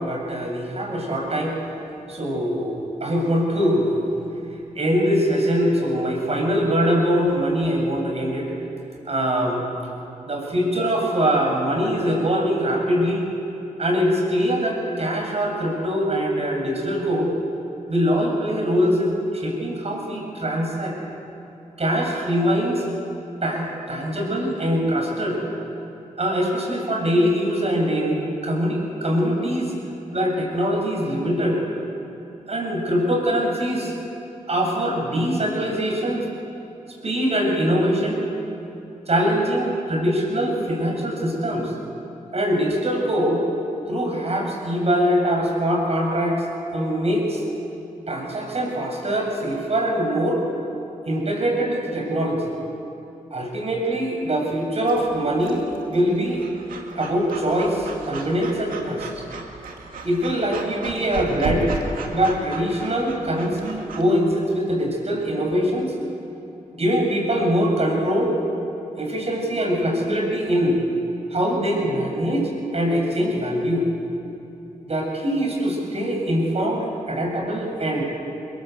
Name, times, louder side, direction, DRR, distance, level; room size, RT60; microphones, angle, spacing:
voice 1, 0.0-1.6 2.1-4.1 4.7-8.5 9.1-9.6 10.2-13.2 13.8-17.3 17.9-21.0 21.8-22.8 23.4-25.4 26.2-29.7 30.1-31.6 32.5-33.9 34.5-36.2 37.0-38.2 39.1-41.7 42.3-43.4 43.9-46.4 46.7-47.4 48.1-50.4 51.0-52.5 53.3-55.6 55.9-56.4 56.9-59.2 60.0-61.7 62.1-65.9 66.7-68.3 69.0-70.8 71.3-73.9 74.9-78.0, equal, 45° right, 0 dB, 8.0 m, -23 dB
Breathing / Dog, 54.9-64.0, right 3 dB, 85° right, 2.3 m, -35 dB
23.5 x 21.5 x 8.1 m, 2.9 s
cardioid pair, 55°, 14 cm